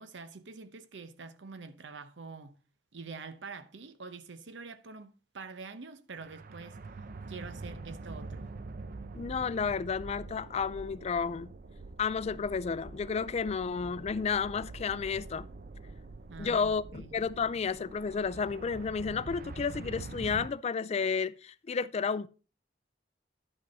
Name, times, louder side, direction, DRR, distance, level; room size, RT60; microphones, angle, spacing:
voice 1, 0.0-2.6 2.9-6.8 7.3-8.5 16.3-17.1, right 4 dB, 90° right, 0.8 m, -46 dB
sound 1, 6.2-20.5, right 3 dB, 55° right, 0.6 m, -45 dB
voice 2, 9.1-11.5 12.0-15.5 16.4-22.3, left 5 dB, 35° left, 0.3 m, -32 dB
11.0 x 5.4 x 4.0 m
head